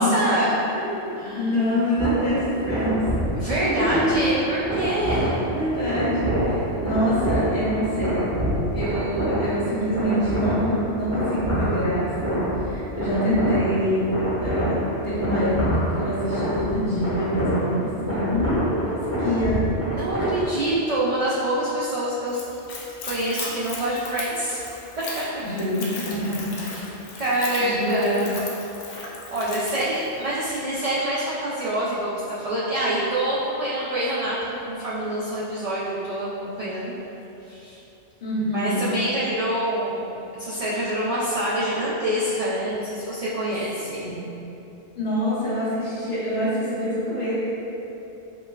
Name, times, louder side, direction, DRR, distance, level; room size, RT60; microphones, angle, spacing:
voice 1, 0.0-0.6 1.2-1.6 3.3-5.5 19.9-22.4 23.0-24.6 25.0-25.2 26.5-26.9 27.2-28.3 29.3-36.9 37.5-37.8 38.5-44.1, right 1 dB, 70° right, -8 dB, 0.3 m, -26 dB
voice 2, 0.7-3.0 3.6-4.3 5.5-8.3 8.7-14.7 15.0-15.7 15.9-19.6 25.4-26.5 27.6-28.3 38.2-38.8 44.0-44.3 44.9-47.3, equal, 40° left, -11 dB, 1.0 m, -25 dB
sound 1, 2.0-20.7, right 1 dB, 15° right, 0.8 m, -26 dB
Splash splatter / Trickle dribble, 22.3-30.6, left 2 dB, 60° left, 0.5 m, -37 dB
5.2 x 2.1 x 2.3 m, 3.0 s
omnidirectional pair, 1.2 m